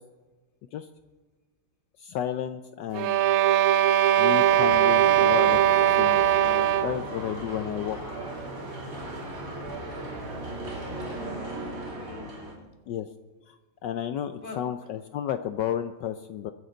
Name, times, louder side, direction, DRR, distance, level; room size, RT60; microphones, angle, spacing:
voice 1, 2.0-3.2 4.2-8.2 8.8-9.0 12.9-13.1 13.5-16.5, left 10 dB, 75° left, 10 dB, 1.0 m, -32 dB
sound 1, 2.9-7.1, right 10 dB, 90° right, 1.6 m, -20 dB
sound 2, 4.4-12.5, right 1 dB, 40° right, 3.3 m, -37 dB
voice 2, 10.7-12.7 14.4-14.6, left 4 dB, 25° left, 3 dB, 1.8 m, -45 dB
23.0 x 9.5 x 3.9 m, 1.3 s
omnidirectional pair, 2.4 m